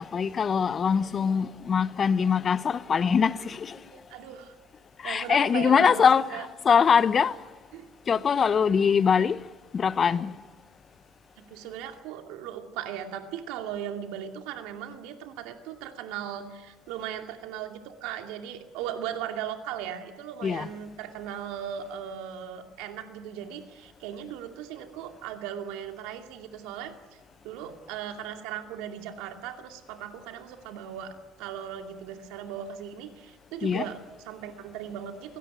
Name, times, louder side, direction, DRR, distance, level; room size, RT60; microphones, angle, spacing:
voice 1, 0.0-3.8 5.0-7.4 8.1-9.4 9.7-10.3 20.4-20.7 33.6-33.8, left 6 dB, 40° left, 1.0 m, -23 dB
voice 2, 3.8-4.5 5.0-6.0 6.3-6.5 7.7-7.9 9.1-9.3 11.4-27.2 27.4-35.4, right 9 dB, 75° right, 2.5 m, -38 dB
23.0 x 17.5 x 9.4 m
hypercardioid pair, 65°, 0 cm